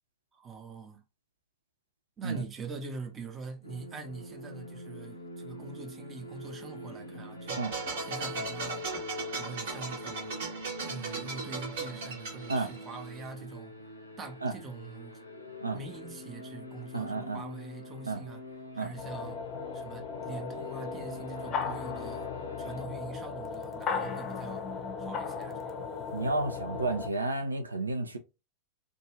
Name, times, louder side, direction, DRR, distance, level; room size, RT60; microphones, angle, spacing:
voice 1, 0.3-1.0 2.2-7.7 8.0-8.9 9.3-10.4 10.8-13.7 14.2-15.2 15.7-18.4 18.7-19.4 19.7-22.3 22.6-24.7 25.0-25.8, right 4 dB, 20° right, 0.7 m, -43 dB
sound 1, 3.6-22.8, left 2 dB, 80° left, 0.6 m, -44 dB
sound 2, 7.5-13.2, right 4 dB, 55° right, 1.0 m, -38 dB
voice 2, 16.9-17.4 18.0-18.2 18.8-18.9 26.1-28.2, right 3 dB, 80° right, 0.4 m, -31 dB
sound 3, 19.0-27.1, left 5 dB, 30° left, 0.6 m, -36 dB
2.6 x 2.3 x 3.0 m
figure-of-eight pair, 90°, 0 cm